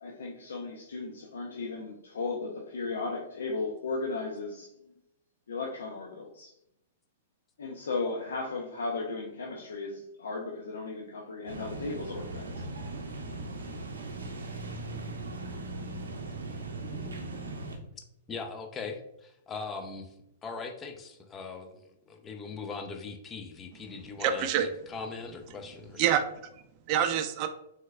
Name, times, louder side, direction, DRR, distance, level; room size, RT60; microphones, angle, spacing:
voice 1, 0.0-4.7 5.5-6.5 7.6-12.5, left 3 dB, 80° left, 0 dB, 0.4 m, -35 dB
sound 1, 11.5-17.8, right 2 dB, 90° right, 0.6 m, -39 dB
voice 2, 18.3-20.1 20.4-26.0, left 4 dB, 20° left, 5 dB, 0.5 m, -40 dB
voice 3, 24.2-24.7 26.0-27.5, right 9 dB, 45° right, 8 dB, 0.4 m, -27 dB
3.4 x 3.1 x 2.3 m, 0.82 s
hypercardioid pair, 120°, 0 cm